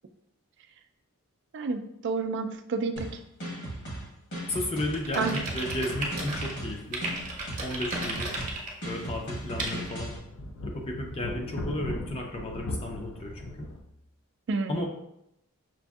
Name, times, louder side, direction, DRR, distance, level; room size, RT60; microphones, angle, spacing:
voice 1, 1.5-3.1 5.1-5.3 14.5-14.9, right 4 dB, 55° right, 7 dB, 0.3 m, -30 dB
sound 1, 3.0-10.2, right 1 dB, 50° left, 1.1 m, -37 dB
voice 2, 4.5-7.0 7.6-8.5 8.8-10.2 10.6-13.7 14.7-14.9, left 1 dB, 25° left, 1 dB, 0.5 m, -33 dB
sound 2, 4.9-6.5 6.9-8.7 9.6-9.7, right 2 dB, 35° right, 0.8 m, -34 dB
sound 3, 6.6-8.1 8.4-8.5 9.1-13.8, left 1 dB, 75° left, 0.5 m, -39 dB
6.0 x 2.5 x 2.3 m, 0.80 s
head